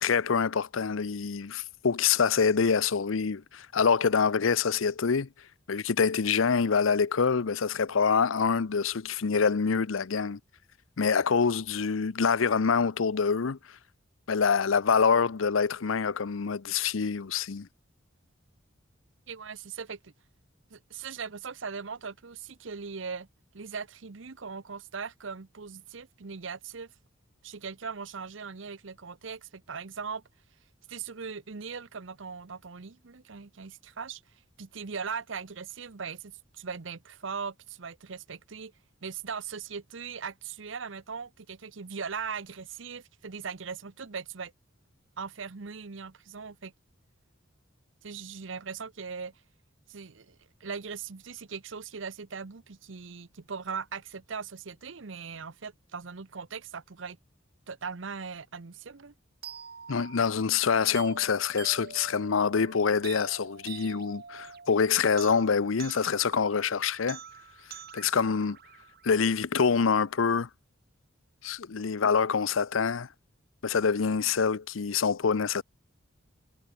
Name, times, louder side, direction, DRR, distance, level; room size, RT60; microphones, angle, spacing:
voice 1, 0.0-5.3 5.7-10.4 11.0-13.6 14.3-17.7 59.9-67.2 67.9-68.6 69.0-70.5 71.4-73.1 73.6-75.6, left 6 dB, 85° left, 0.6 m, -26 dB
voice 2, 19.3-20.1 20.7-23.3 23.5-26.9 27.4-30.2 30.9-34.2 34.6-38.7 39.0-44.5 45.2-46.7 48.0-49.3 49.9-57.2 57.7-59.1, right 5 dB, 70° right, 0.8 m, -39 dB
sound 1, 59.4-69.5, right 7 dB, 50° right, 2.2 m, -46 dB
head